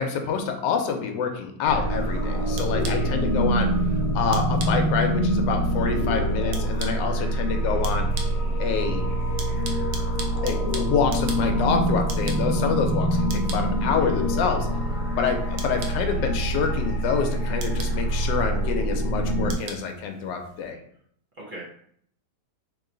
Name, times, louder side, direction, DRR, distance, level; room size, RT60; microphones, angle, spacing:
voice 1, 0.0-3.7 4.1-8.1 8.6-9.0 10.4-14.7 15.2-20.8, left 6 dB, 90° left, 4 dB, 1.3 m, -27 dB
sound 1, 1.7-19.6, right 1 dB, 60° left, 1.0 m, -25 dB
sound 2, 1.9-20.7, right 4 dB, 80° right, 1.3 m, -43 dB
voice 2, 2.9-3.1 14.0-14.1 21.4-21.6, right 1 dB, 50° right, -4 dB, 0.6 m, -40 dB
sound 3, 8.8-15.9, equal, 5° left, 1.1 m, -44 dB
3.1 x 3.0 x 3.8 m, 0.64 s
omnidirectional pair, 1.9 m